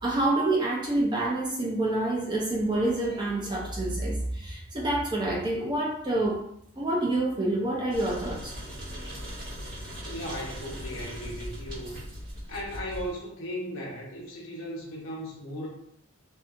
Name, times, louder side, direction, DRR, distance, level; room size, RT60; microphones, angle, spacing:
voice 1, 0.0-6.4 6.8-8.6, right 2 dB, 20° right, -3 dB, 0.5 m, -27 dB
sound 1, 7.9-13.1, equal, 45° right, 1.2 m, -39 dB
voice 2, 10.0-12.0 12.5-15.7, equal, 70° left, -3 dB, 0.9 m, -37 dB
2.6 x 2.6 x 2.4 m, 0.70 s
head